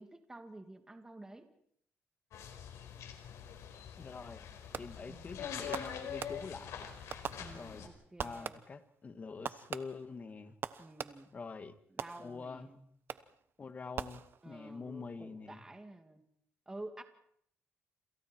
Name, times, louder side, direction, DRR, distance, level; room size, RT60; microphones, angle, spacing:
voice 1, 0.0-1.5 5.1-5.4 7.4-8.6 10.8-11.4 11.9-12.9 14.4-16.2 16.7-17.0, right 2 dB, 15° right, 6 dB, 2.5 m, -50 dB
sound 1, 2.3-7.9, left 8 dB, 80° left, 4.6 m, -44 dB
voice 2, 4.0-4.4 4.8-6.9 7.5-7.9 8.2-10.5 11.3-11.7 12.2-12.7 13.6-15.6, left 4 dB, 30° left, 10 dB, 1.9 m, -45 dB
Fireworks, 4.7-5.2 5.7-6.7 7.1-7.9 8.2-8.9 9.5-11.4 12.0-12.6 13.1-13.5 14.0-14.7, right 7 dB, 50° right, 1.1 m, -43 dB
29.0 x 27.5 x 4.6 m, 0.67 s
cardioid pair, 125°, 5 cm